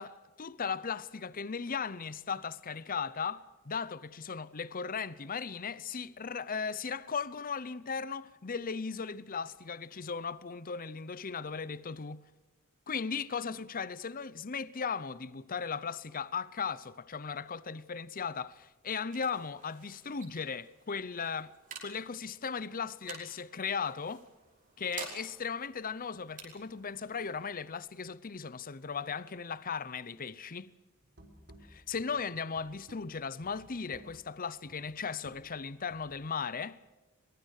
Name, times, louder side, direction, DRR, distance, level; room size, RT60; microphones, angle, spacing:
voice 1, 0.0-12.2 12.9-21.5 21.8-24.3 24.8-30.7 31.7-36.8, left 5 dB, 40° left, 0.7 m, -37 dB
sound 1, 18.5-29.7, right 5 dB, 35° right, 5.5 m, -52 dB
sound 2, 31.0-36.3, equal, 55° right, 3.9 m, -57 dB
23.0 x 22.0 x 6.5 m
head